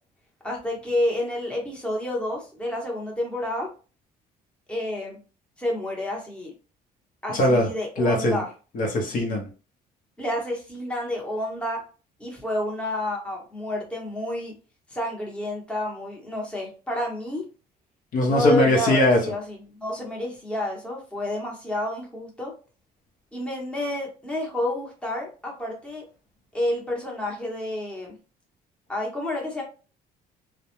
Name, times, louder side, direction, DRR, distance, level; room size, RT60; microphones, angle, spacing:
voice 1, 0.4-3.7 4.7-5.2 5.6-6.5 7.2-8.5 10.2-11.8 12.2-14.5 14.9-17.4 18.3-22.5 23.3-26.0 26.5-28.1 28.9-29.6, left 1 dB, 5° left, -2 dB, 0.9 m, -29 dB
voice 2, 7.3-7.7 8.0-8.4 8.7-9.5 18.1-19.2, left 1 dB, 55° left, 1 dB, 0.8 m, -20 dB
2.3 x 2.1 x 2.9 m, 0.35 s
cardioid pair, 110°, 17 cm